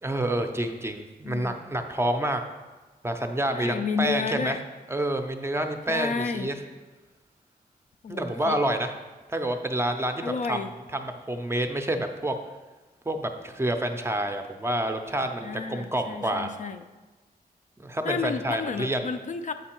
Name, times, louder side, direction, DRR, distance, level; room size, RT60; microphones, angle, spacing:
voice 1, 0.0-2.4 3.0-4.6 4.9-6.5 8.1-8.9 9.3-10.6 10.9-12.4 13.1-16.5 17.8-19.1, right 1 dB, 15° right, 6 dB, 0.5 m, -28 dB
voice 2, 1.2-1.6 3.5-4.6 5.9-6.5 8.0-8.6 10.2-10.7 15.4-16.8 18.0-19.5, left 5 dB, 50° left, 8 dB, 0.4 m, -31 dB
7.9 x 4.5 x 4.4 m, 1.2 s
wide cardioid pair, 140°, 16 cm